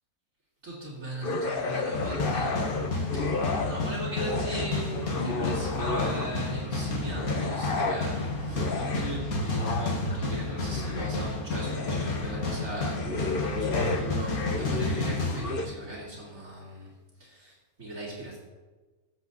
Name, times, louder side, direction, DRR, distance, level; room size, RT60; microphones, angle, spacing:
voice 1, 0.6-18.4, right 2 dB, 65° right, -9 dB, 3.7 m, -39 dB
sound 1, 1.2-3.9 4.2-6.6 7.1-15.7, left 3 dB, 40° left, 1.2 m, -33 dB
sound 2, 1.9-16.1, left 2 dB, 80° left, 2.1 m, -31 dB
23.0 x 7.7 x 4.1 m, 1.3 s
omnidirectional pair, 1.5 m